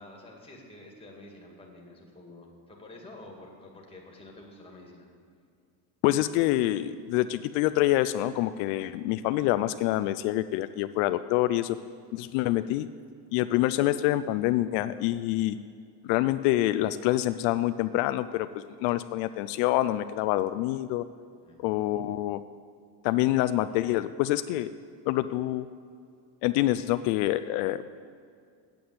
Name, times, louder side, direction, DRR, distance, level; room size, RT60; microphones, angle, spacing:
voice 1, 0.0-5.1 21.3-21.7, left 2 dB, 10° left, 0 dB, 2.0 m, -49 dB
voice 2, 6.0-11.8 12.1-12.9 13.3-15.6 16.0-21.1 21.6-22.4 23.0-24.7 25.1-25.7 26.4-27.8, left 15 dB, 80° left, 12 dB, 0.6 m, -26 dB
8.7 x 7.7 x 7.8 m, 2.3 s
cardioid pair, 135°, 50 cm